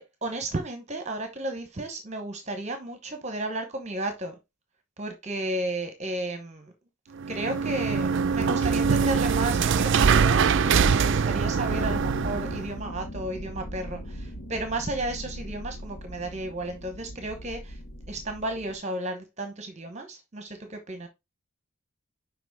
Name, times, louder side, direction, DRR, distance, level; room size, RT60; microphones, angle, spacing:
voice 1, 0.0-4.3 5.0-6.7 7.3-17.8 18.1-21.1, right 1 dB, 30° right, 1.0 m, -33 dB
sound 1, 7.2-12.7, right 6 dB, 55° right, 0.4 m, -23 dB
sound 2, 11.7-18.8, equal, 75° left, 1.3 m, -39 dB
6.0 x 4.9 x 4.7 m
head